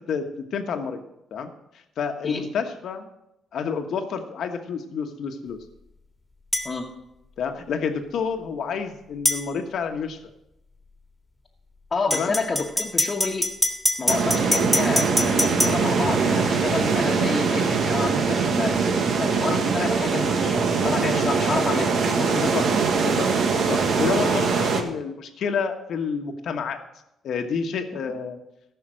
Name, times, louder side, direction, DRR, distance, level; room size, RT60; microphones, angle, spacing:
voice 1, 0.5-1.0 1.3-1.5 2.0-3.1 3.5-5.6 7.4-10.2 12.1-12.3 22.4-22.6 23.0-26.8 27.2-28.4, left 6 dB, 70° left, 6 dB, 1.3 m, -29 dB
sound 1, 6.5-6.7 9.3-9.4 12.1-15.7, left 1 dB, 5° left, 1.8 m, -23 dB
voice 2, 11.9-13.5 14.0-18.8 19.2-22.4, left 4 dB, 35° left, -3 dB, 1.3 m, -29 dB
sound 2, 14.1-24.8, right 5 dB, 65° right, 1.5 m, -22 dB
14.0 x 5.8 x 6.3 m, 0.86 s
cardioid pair, 90°, 0 cm